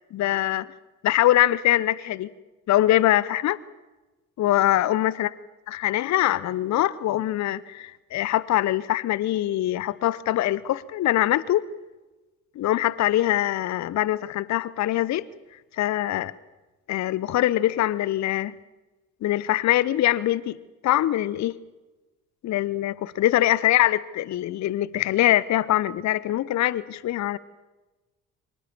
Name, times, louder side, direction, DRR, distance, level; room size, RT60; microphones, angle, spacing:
voice 1, 0.1-0.7 1.0-2.3 2.7-3.6 4.4-5.3 5.7-11.7 12.6-15.3 15.8-16.3 16.9-18.5 19.2-20.6 20.8-21.6 22.4-27.4, left 14 dB, 40° left, 20 dB, 0.8 m, -23 dB
24.5 x 21.0 x 7.3 m, 1.1 s
figure-of-eight pair, 50°, 41 cm